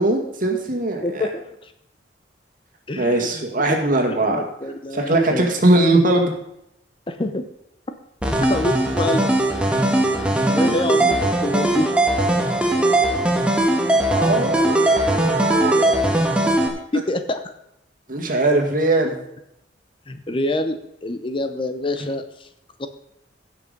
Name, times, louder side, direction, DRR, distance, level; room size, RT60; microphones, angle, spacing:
voice 1, 0.0-1.3 3.0-4.4 4.9-6.3 14.1-15.9 18.1-19.2, right 2 dB, 50° right, 2 dB, 2.0 m, -20 dB
voice 2, 1.0-1.7 2.9-5.6 7.1-7.4 8.5-9.3 9.7-9.8 10.5-11.9 16.9-17.4 20.1-22.5 22.8-22.9, left 1 dB, 30° left, 9 dB, 0.7 m, -26 dB
sound 1, 8.2-16.7, right 1 dB, 5° right, 1.4 m, -19 dB
16.0 x 6.0 x 5.2 m, 0.80 s
head